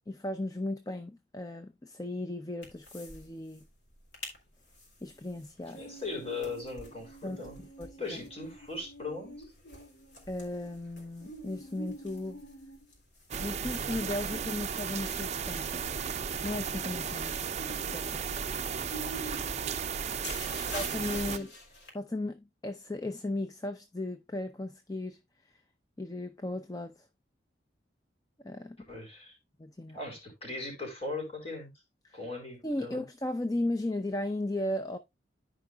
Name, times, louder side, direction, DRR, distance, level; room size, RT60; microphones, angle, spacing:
voice 1, 0.1-3.6 5.0-5.8 7.2-7.4 7.8-8.2 10.3-12.4 13.4-15.9 16.4-17.4 17.7-18.3 20.7-21.5 21.9-25.2 26.0-26.9 28.4-28.8 29.6-30.0 32.0-32.2 32.6-35.0, left 1 dB, 20° left, 0.5 m, -36 dB
sound 1, 2.6-3.2 3.5-3.6 4.0-4.4 4.8-21.9, equal, 75° left, 3.4 m, -47 dB
voice 2, 5.8-7.6 8.0-9.5 17.0-17.3 20.4-20.8 21.1-21.3 28.9-29.4 29.9-31.7 32.1-33.0, left 3 dB, 35° left, 4.3 m, -39 dB
sound 2, 13.3-21.4, right 6 dB, 40° right, 0.5 m, -34 dB
14.0 x 5.0 x 2.3 m
head